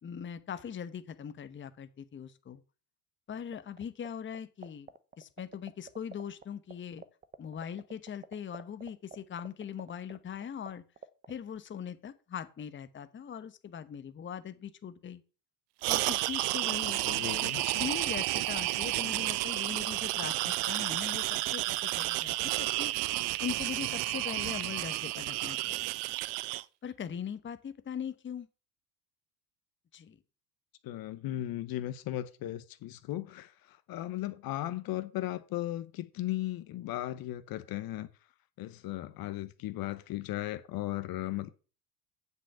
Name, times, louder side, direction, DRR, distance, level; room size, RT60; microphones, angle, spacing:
voice 1, 0.0-2.6 3.3-4.9 5.2-7.0 7.4-10.8 11.3-15.2 15.9-22.9 23.4-25.9 26.8-28.5 29.9-30.2, left 8 dB, 25° left, 1.0 m, -41 dB
sound 1, 3.5-4.1 4.3-6.4 6.7-6.8 7.0-10.7 11.0-11.3, right 6 dB, 20° right, 0.8 m, -45 dB
sound 2, 15.8-26.6, right 19 dB, 55° right, 0.7 m, -31 dB
voice 2, 16.8-17.6 30.8-38.1 38.6-41.5, left 14 dB, 50° left, 1.0 m, -36 dB
7.5 x 6.7 x 6.8 m
hypercardioid pair, 75°, 47 cm